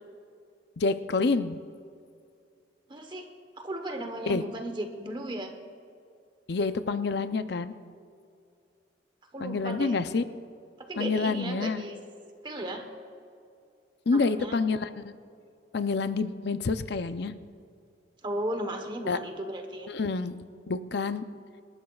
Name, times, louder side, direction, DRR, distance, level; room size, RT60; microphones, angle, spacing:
voice 1, 0.8-1.6 4.3-4.4 6.5-7.7 9.4-10.2 11.0-11.8 14.1-15.0 15.7-17.3 19.1-19.2 19.9-20.4 20.7-21.2, left 4 dB, 60° left, 11 dB, 0.6 m, -28 dB
voice 2, 2.9-3.3 3.6-5.5 9.3-10.0 10.8-12.0 12.4-12.8 14.1-14.6 18.2-19.9, right 1 dB, 25° right, 5 dB, 1.1 m, -35 dB
26.0 x 12.5 x 2.4 m, 2.4 s
head